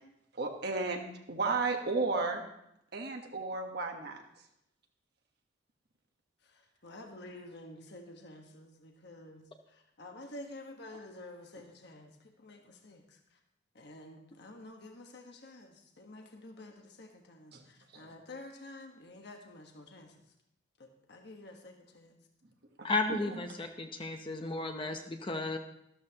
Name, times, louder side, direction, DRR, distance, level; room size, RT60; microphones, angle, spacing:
voice 1, 0.3-2.4 2.9-4.2 17.5-17.6 17.9-18.1 22.8-23.4, right 3 dB, 55° right, 2 dB, 1.2 m, -34 dB
voice 2, 6.4-13.4 13.7-20.1 20.8-22.2, left 2 dB, 55° left, 3 dB, 1.3 m, -50 dB
voice 3, 22.8-25.6, left 2 dB, 25° left, 5 dB, 0.8 m, -34 dB
13.0 x 13.0 x 2.9 m, 0.80 s
head